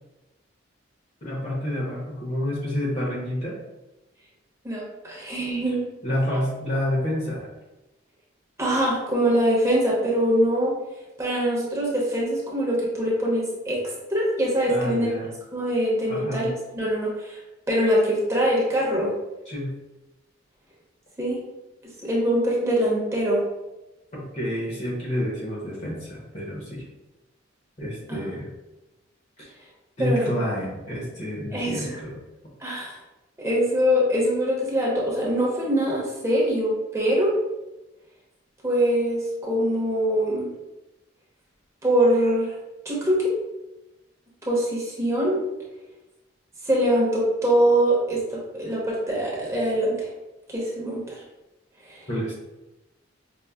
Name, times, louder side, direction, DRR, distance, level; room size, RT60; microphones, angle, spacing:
voice 1, 1.2-3.6 6.0-7.5 14.7-15.3 16.1-16.5 19.5-19.7 24.1-26.8 27.8-28.5 29.4-29.5 30.0-32.2 52.1-52.3, left 1 dB, 35° left, -4 dB, 0.7 m, -29 dB
voice 2, 4.6-5.8 8.6-10.7 11.2-13.8 14.1-15.1 15.5-17.4 17.7-19.1 21.2-21.4 22.0-23.4 28.1-28.2 30.0-30.3 31.5-32.0 32.6-33.0 33.4-37.3 38.6-40.5 41.8-42.5 42.8-43.3 44.5-45.4 46.6-50.1 50.5-51.2 51.9-52.1, equal, 15° right, -5 dB, 0.8 m, -23 dB
5.2 x 2.0 x 2.2 m, 1.0 s
head